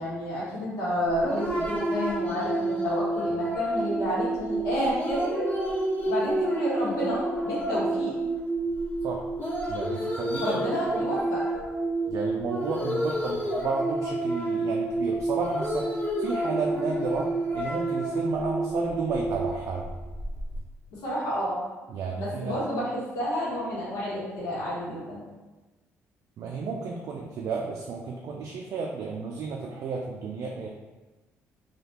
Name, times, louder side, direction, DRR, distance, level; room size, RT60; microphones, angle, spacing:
voice 1, 0.0-5.5 6.0-8.1 10.4-11.4 20.9-21.6 22.1-25.2, equal, 90° left, -8 dB, 1.0 m, -30 dB
sound 1, 1.0-20.6, right 1 dB, 35° left, 0.9 m, -29 dB
voice 2, 9.7-11.1 12.1-19.9 21.9-22.6 26.4-30.7, right 4 dB, 60° right, -1 dB, 0.3 m, -32 dB
3.2 x 2.3 x 2.8 m, 1.2 s
cardioid pair, 105°, 6 cm